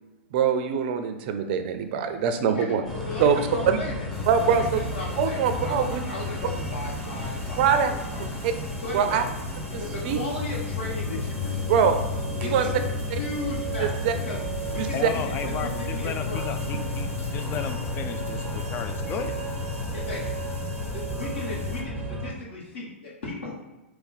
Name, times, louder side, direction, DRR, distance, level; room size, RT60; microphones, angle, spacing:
voice 1, 0.3-2.8 3.2-3.4 3.7-3.8 4.3-4.8 5.2-6.0 7.6-7.9 8.4-8.5 8.9-9.2 9.7-10.2 11.7-12.0 12.4-12.7 13.1-13.2 13.8-14.1 14.8-15.1, right 7 dB, 45° right, 8 dB, 0.5 m, -23 dB
voice 2, 2.5-4.1 4.4-8.3 8.8-9.2 9.8-11.9 12.4-13.9 14.2-14.4 14.7-15.3 15.6-16.5 19.0-19.1 19.9-23.5, left 2 dB, 60° left, -5 dB, 1.3 m, -36 dB
sound 1, 2.8-22.3, left 1 dB, ahead, 0.8 m, -32 dB
sound 2, 4.1-21.8, left 3 dB, 80° left, 0.8 m, -41 dB
voice 3, 14.9-19.4, left 7 dB, 30° left, 7 dB, 0.4 m, -34 dB
5.1 x 2.3 x 4.2 m, 1.1 s
figure-of-eight pair, 110°, 7 cm